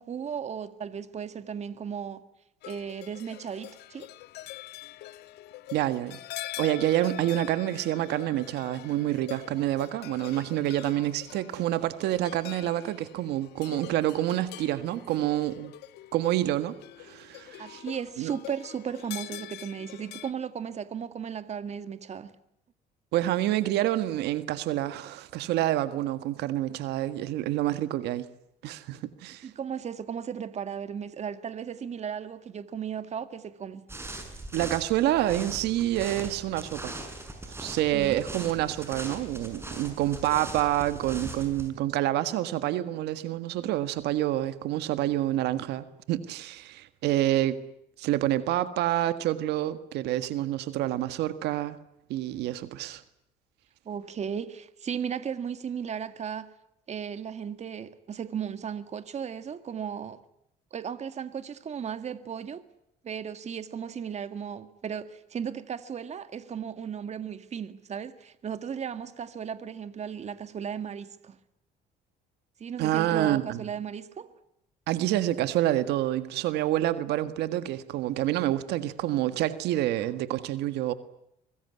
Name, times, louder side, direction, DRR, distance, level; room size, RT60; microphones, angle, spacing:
voice 1, 0.0-2.2 2.6-4.1 17.6-22.3 29.4-33.8 37.9-38.2 53.9-56.5 56.9-60.2 60.7-62.6 63.0-71.4 72.6-74.3, right 7 dB, 40° right, 2.0 m, -35 dB
sound 1, 2.6-20.3, left 14 dB, 80° left, 1.2 m, -44 dB
voice 2, 5.7-6.2 6.6-15.7 16.1-17.8 18.2-18.3 23.1-28.3 28.6-29.5 34.5-36.9 37.6-47.6 48.0-51.8 52.1-53.0 72.8-73.6 74.9-80.9, right 13 dB, 85° right, 1.7 m, -28 dB
sound 2, 33.9-41.7, right 2 dB, 15° right, 6.7 m, -40 dB
25.0 x 20.5 x 9.7 m
cardioid pair, 110°, 17 cm